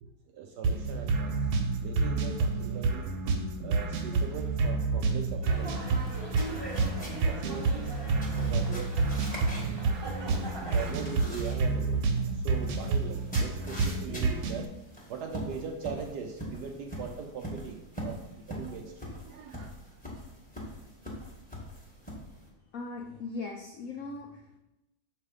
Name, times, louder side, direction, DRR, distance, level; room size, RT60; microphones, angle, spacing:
voice 1, 0.0-3.1 3.6-6.0 6.6-7.9 8.2-10.4 10.7-14.7 15.1-20.0, right 6 dB, 70° right, 3 dB, 1.0 m, -41 dB
sound 1, 0.6-14.7, right 3 dB, 85° right, 1.6 m, -29 dB
Dog, 5.4-10.9, right 2 dB, 25° right, 0.5 m, -41 dB
sound 2, 5.6-22.5, equal, 5° left, 1.0 m, -43 dB
voice 2, 22.7-24.6, left 3 dB, 80° left, 1 dB, 0.7 m, -39 dB
6.6 x 3.3 x 4.9 m, 0.91 s
omnidirectional pair, 2.2 m